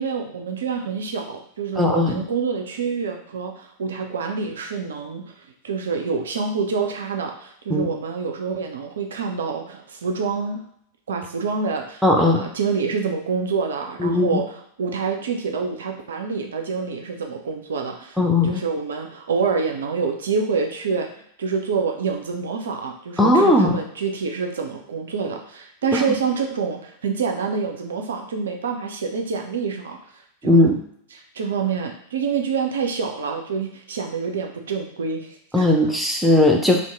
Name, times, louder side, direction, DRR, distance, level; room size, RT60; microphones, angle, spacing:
voice 1, 0.0-5.3 5.6-10.6 11.1-14.5 14.8-18.2 18.4-30.0 30.4-30.7 31.3-35.7, right 5 dB, 65° right, 3 dB, 0.4 m, -27 dB
voice 2, 1.8-2.2 7.7-7.9 12.0-12.4 14.0-14.4 18.2-18.6 23.2-23.8 25.9-26.0 30.4-30.8 35.5-36.8, left 1 dB, ahead, 0 dB, 0.5 m, -17 dB
2.6 x 2.5 x 3.4 m, 0.68 s
figure-of-eight pair, 90°, 0 cm